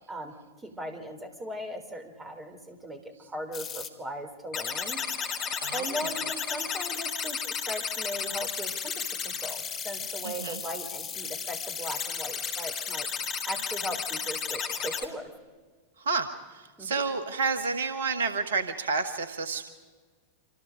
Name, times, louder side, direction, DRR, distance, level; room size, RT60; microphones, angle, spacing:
voice 1, 0.1-5.0 5.7-13.1 13.5-15.3 16.8-17.0, equal, 15° right, 6 dB, 3.6 m, -38 dB
sound 1, 3.5-3.9 4.5-15.0, left 6 dB, 30° left, 2.4 m, -33 dB
voice 2, 5.6-6.1 10.2-10.6 16.0-19.7, right 4 dB, 65° right, 10 dB, 1.4 m, -30 dB
26.5 x 26.5 x 5.2 m, 1.5 s
figure-of-eight pair, 90°, 0 cm